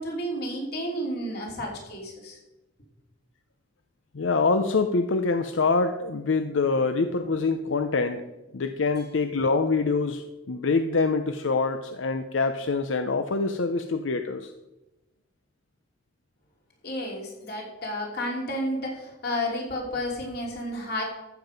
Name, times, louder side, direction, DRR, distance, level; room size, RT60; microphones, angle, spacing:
voice 1, 0.0-2.4 16.8-21.0, equal, 55° left, -1 dB, 3.1 m, -31 dB
voice 2, 4.1-8.2 8.5-14.5, left 4 dB, 85° left, 8 dB, 0.6 m, -25 dB
13.5 x 7.5 x 5.2 m, 1.0 s
head